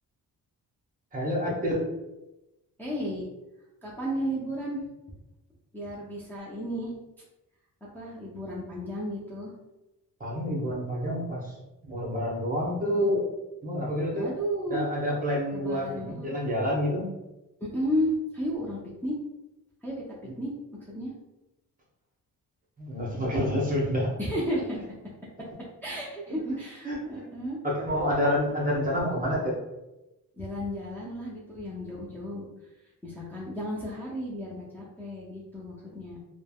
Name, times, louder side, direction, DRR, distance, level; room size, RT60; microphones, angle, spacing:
voice 1, 1.1-1.9 10.2-11.4 11.8-13.2 13.6-14.3 14.7-17.1 22.8-24.1 26.8-27.3 27.6-29.6, equal, 25° right, -3 dB, 0.8 m, -28 dB
voice 2, 2.8-3.3 3.8-4.9 5.7-7.0 7.9-9.5 14.1-14.9 15.5-16.3 17.6-19.2 19.8-20.0 20.4-21.1 24.2-24.9 25.8-27.6 30.4-32.5 33.0-36.2, equal, 5° left, -7 dB, 0.5 m, -33 dB
3.2 x 2.1 x 2.3 m, 0.98 s
cardioid pair, 105°, 36 cm